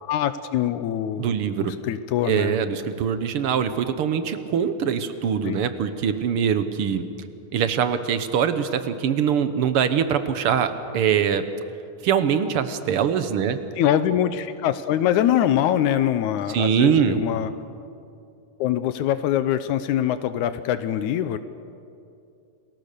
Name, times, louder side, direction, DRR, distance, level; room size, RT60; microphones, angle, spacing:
voice 1, 0.0-1.3 1.6-2.8 5.4-5.6 13.8-17.5 18.6-21.4, left 11 dB, 85° left, 12 dB, 2.1 m, -23 dB
voice 2, 1.2-1.7 2.3-7.0 7.5-11.4 12.0-13.6 16.5-17.2, right 8 dB, 60° right, 10 dB, 1.6 m, -23 dB
29.5 x 20.5 x 6.7 m, 2.6 s
omnidirectional pair, 3.4 m